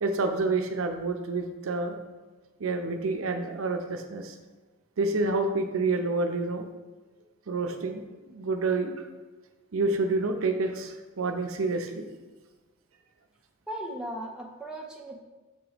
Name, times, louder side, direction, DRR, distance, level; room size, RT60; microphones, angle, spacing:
voice 1, 0.0-2.0 2.6-4.3 5.0-6.7 7.5-9.0 9.7-12.0, right 3 dB, 75° right, 6 dB, 0.5 m, -28 dB
voice 2, 13.7-15.2, right 1 dB, 5° right, -2 dB, 0.6 m, -37 dB
7.1 x 3.0 x 4.9 m, 1.2 s
head